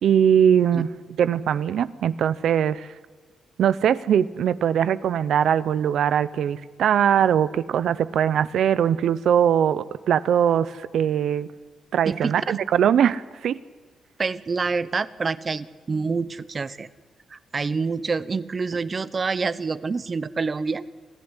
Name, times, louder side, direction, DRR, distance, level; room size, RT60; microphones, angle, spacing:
voice 1, 0.0-0.9 1.2-2.9 3.6-11.5 11.9-13.6, right 9 dB, 75° right, 16 dB, 0.9 m, -21 dB
voice 2, 12.1-12.5 14.2-16.9 17.3-20.8, right 4 dB, 35° right, 16 dB, 1.0 m, -27 dB
26.5 x 15.5 x 10.0 m, 1.4 s
cardioid pair, 100°, 0 cm